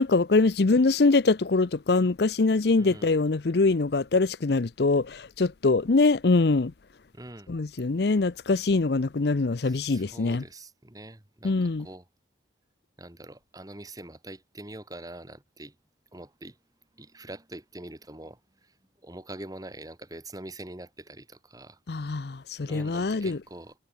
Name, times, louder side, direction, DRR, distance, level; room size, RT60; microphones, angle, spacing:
voice 1, 0.0-6.7 7.5-10.4 11.4-11.9 21.9-23.4, left 3 dB, 60° left, 0.6 m, -23 dB
voice 2, 2.8-3.2 7.1-7.5 9.6-12.1 13.0-15.7 16.1-16.6 16.9-18.7 19.0-21.8 22.6-23.7, right 1 dB, 20° right, 1.6 m, -44 dB
head